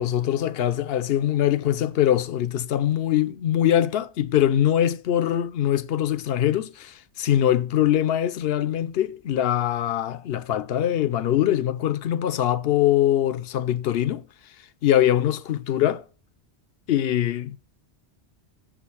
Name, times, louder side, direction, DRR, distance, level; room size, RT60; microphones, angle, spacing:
voice 1, 0.0-14.3 14.8-16.0 16.9-17.6, left 11 dB, 65° left, 0.7 m, -23 dB
7.1 x 5.0 x 7.0 m
omnidirectional pair, 1.2 m